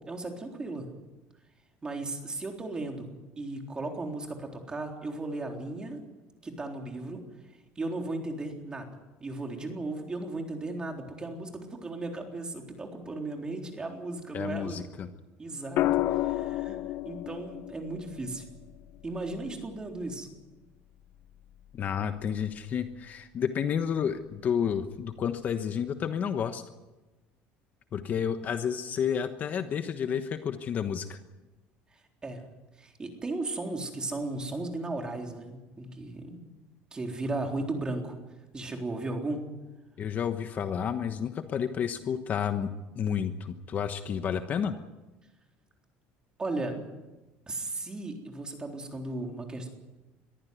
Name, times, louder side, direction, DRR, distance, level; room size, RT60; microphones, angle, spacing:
voice 1, 0.1-0.9 1.8-6.0 6.4-7.2 7.8-14.8 15.4-16.8 17.0-18.5 19.0-20.4 31.9-32.4 32.8-36.5 36.9-38.2 38.5-39.4 46.4-46.8 47.5-49.7, right 2 dB, 20° right, 2 dB, 3.8 m, -36 dB
voice 2, 14.3-15.1 21.7-26.6 27.9-31.2 40.0-44.7, left 8 dB, 35° left, 8 dB, 1.2 m, -31 dB
sound 1, 15.8-19.9 21.6-22.0, left 15 dB, 55° left, 0.9 m, -32 dB
23.0 x 14.5 x 9.5 m, 1.1 s
cardioid pair, 140°, 5 cm